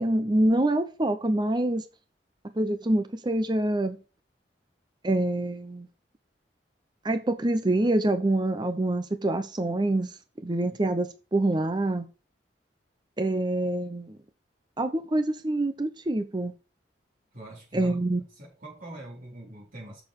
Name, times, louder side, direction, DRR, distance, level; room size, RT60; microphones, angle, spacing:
voice 1, 0.0-1.8 2.5-4.0 5.0-5.9 7.0-12.1 13.2-14.2 14.8-16.5 17.7-18.2, right 1 dB, 25° right, 0.7 m, -26 dB
voice 2, 17.3-18.0 18.4-20.0, right 1 dB, 50° right, 4.3 m, -42 dB
6.8 x 6.3 x 6.3 m
head